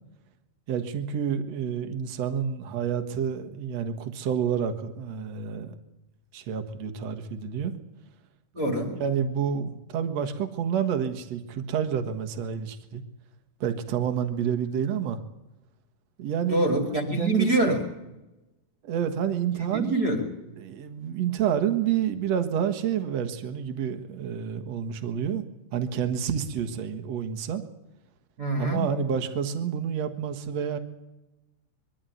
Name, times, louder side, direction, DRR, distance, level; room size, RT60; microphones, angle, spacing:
voice 1, 0.7-5.8 6.3-7.7 9.0-13.0 13.6-15.2 16.2-16.7 17.2-17.8 18.8-20.0 20.6-25.4 25.7-27.6 28.6-30.8, right 8 dB, 70° right, 8 dB, 1.6 m, -29 dB
voice 2, 8.5-9.0 16.5-17.9 19.7-20.3 28.4-28.9, right 1 dB, 25° right, 3 dB, 2.4 m, -25 dB
23.0 x 13.5 x 9.2 m, 0.99 s
omnidirectional pair, 5.2 m